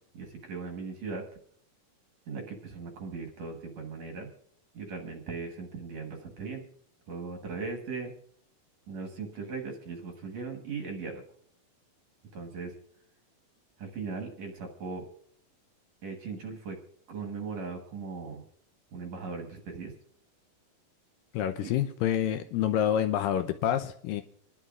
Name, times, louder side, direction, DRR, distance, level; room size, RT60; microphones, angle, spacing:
voice 1, 0.1-1.3 2.3-4.3 4.7-6.6 7.1-8.1 8.9-11.2 12.3-12.8 13.8-15.1 16.0-16.8 17.1-18.4 18.9-19.9 21.6-21.7, right 4 dB, 60° right, 3 dB, 2.2 m, -38 dB
voice 2, 21.3-24.2, left 10 dB, 80° left, 8 dB, 2.2 m, -28 dB
26.0 x 11.0 x 2.4 m, 0.63 s
omnidirectional pair, 4.2 m